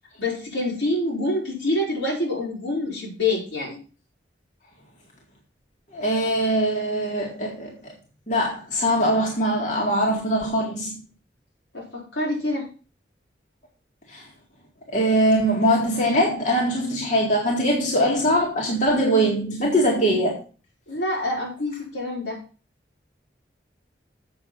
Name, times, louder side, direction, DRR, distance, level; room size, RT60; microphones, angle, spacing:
voice 1, 0.2-3.8 11.7-12.7 20.9-22.4, left 2 dB, 85° left, 4.8 m, -26 dB
voice 2, 5.9-7.8 8.3-10.9 14.1-14.2 14.9-20.4, equal, 45° left, 2.1 m, -22 dB
7.9 x 6.4 x 6.1 m
head